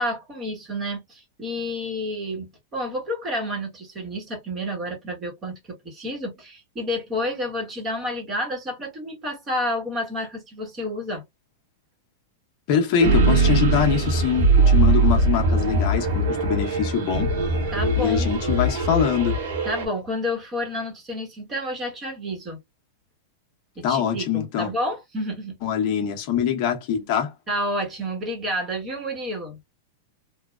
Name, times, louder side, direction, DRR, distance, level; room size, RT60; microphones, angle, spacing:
voice 1, 0.0-5.6 5.8-11.2 17.7-18.3 19.6-22.6 23.8-25.5 27.5-29.6, left 1 dB, 20° right, 1.2 m, -30 dB
voice 2, 12.7-17.3 18.0-19.4 23.8-24.7 25.6-27.3, left 7 dB, 40° left, 0.8 m, -23 dB
sound 1, 13.0-19.9, right 3 dB, 85° right, 1.2 m, -21 dB
3.1 x 2.3 x 2.2 m
supercardioid pair, 160°, 0 cm